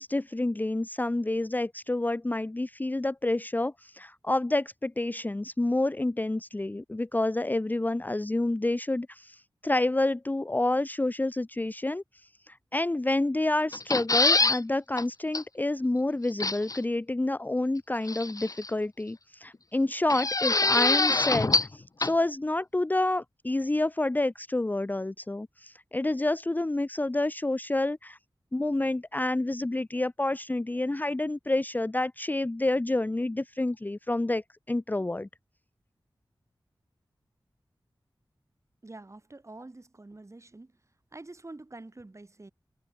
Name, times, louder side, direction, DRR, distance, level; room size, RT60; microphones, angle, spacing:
voice 1, 0.0-12.0 12.5-28.2 28.5-34.4 34.7-35.3, left 2 dB, 20° left, 0.6 m, -28 dB
sound 1, 13.7-14.6 15.0-15.1 15.3-15.4 16.4-16.8 18.1-18.7 20.1-21.7 22.0-22.1, left 3 dB, 45° left, 1.8 m, -24 dB
voice 2, 38.8-40.7 41.1-42.5, right 2 dB, 35° right, 7.6 m, -46 dB
wide cardioid pair, 60°, 8 cm